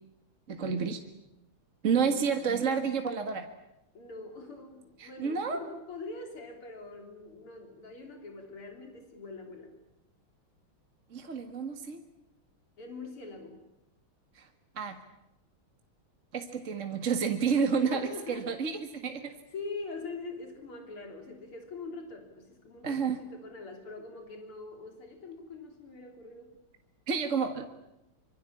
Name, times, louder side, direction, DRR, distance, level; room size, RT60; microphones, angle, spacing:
voice 1, 0.5-1.0 1.8-3.5 5.0-5.6 11.1-12.0 14.4-14.5 14.8-15.0 16.3-19.3 22.8-23.2 27.1-27.7, right 6 dB, 35° right, 6 dB, 1.9 m, -30 dB
voice 2, 1.8-2.2 3.9-9.7 12.8-13.6 16.6-16.8 17.7-18.7 19.2-26.5, left 3 dB, 85° left, 4 dB, 4.2 m, -43 dB
26.0 x 24.5 x 8.5 m, 0.89 s
omnidirectional pair, 2.3 m